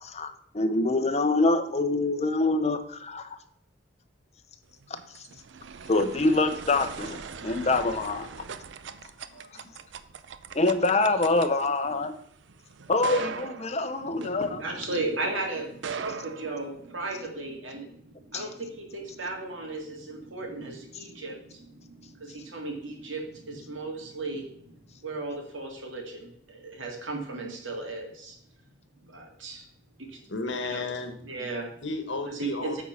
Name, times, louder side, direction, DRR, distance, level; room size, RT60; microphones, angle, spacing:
voice 1, 0.0-3.3 5.2-5.3 5.9-8.3 10.5-12.1 12.9-14.6 18.3-18.4, left 2 dB, 35° left, 8 dB, 0.7 m, -25 dB
sound 1, 4.7-15.1 15.7-17.2, right 6 dB, 65° right, 0.5 m, -41 dB
voice 2, 14.0-24.7 25.0-28.3 29.1-29.6 30.0-30.2 30.6-30.9 31.2-31.7 32.2-32.8, right 2 dB, 85° right, 1 dB, 2.1 m, -36 dB
voice 3, 30.3-31.2 31.8-32.8, left 3 dB, 65° left, 6 dB, 1.3 m, -33 dB
9.0 x 4.2 x 5.7 m, 0.69 s
head